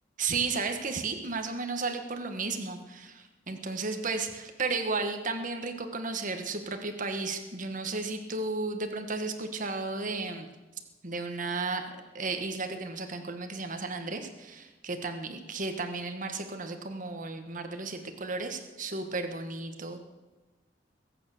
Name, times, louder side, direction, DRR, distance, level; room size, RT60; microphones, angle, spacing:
voice 1, 0.2-10.5 11.0-20.0, right 3 dB, 45° right, 6 dB, 1.5 m, -34 dB
21.5 x 8.5 x 6.7 m, 1.2 s
head